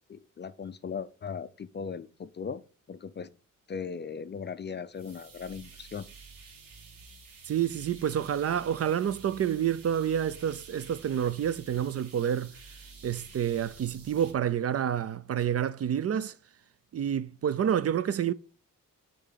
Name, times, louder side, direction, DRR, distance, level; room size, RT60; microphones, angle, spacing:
voice 1, 0.1-2.6 2.9-3.3 3.7-6.1, left 6 dB, 35° left, 0.4 m, -38 dB
sound 1, 4.9-14.3, right 4 dB, 85° right, 2.4 m, -50 dB
voice 2, 7.5-12.5 13.0-16.3 16.9-18.3, right 9 dB, 50° right, 0.4 m, -28 dB
8.3 x 3.9 x 5.7 m
wide cardioid pair, 130°, 33 cm